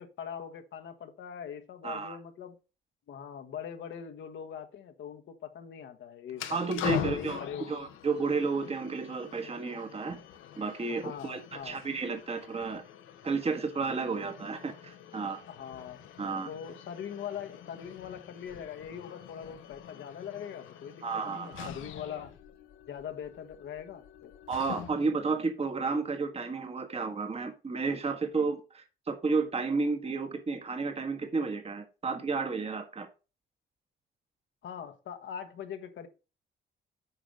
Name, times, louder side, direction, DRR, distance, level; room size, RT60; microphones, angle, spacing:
voice 1, 0.0-2.6 3.1-7.7 10.9-11.8 15.5-16.0 16.5-22.3 22.9-24.3 34.6-36.1, left 8 dB, 70° left, 1.3 m, -42 dB
voice 2, 1.8-2.2 6.5-7.4 7.7-10.2 10.6-12.8 13.2-15.4 16.2-16.5 21.0-21.7 24.5-33.1, right 4 dB, 30° right, 1.5 m, -32 dB
sound 1, 6.3-25.2, left 10 dB, 85° left, 1.2 m, -44 dB
8.7 x 5.0 x 5.2 m
cardioid pair, 90°, 20 cm